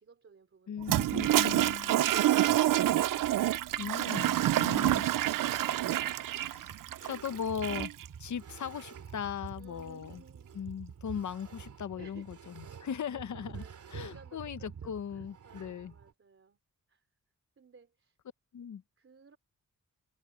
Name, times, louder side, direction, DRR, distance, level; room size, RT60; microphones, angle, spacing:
voice 1, 0.0-1.4 9.6-10.5 11.9-12.5 12.9-16.6 16.9-17.1 17.6-18.2 19.0-19.4, right 5 dB, 40° right, 3.4 m, -58 dB
voice 2, 0.7-2.0 3.8-5.1 6.2-6.8 7.0-7.9 8.2-10.2 10.5-13.6 13.9-15.9 18.5-18.8, left 8 dB, 65° left, 1.0 m, -38 dB
Toilet flush, 0.8-8.1, right 13 dB, 85° right, 0.5 m, -27 dB
sound 1, 4.8-16.1, right 7 dB, 70° right, 3.1 m, -49 dB
wide cardioid pair, 170°, 32 cm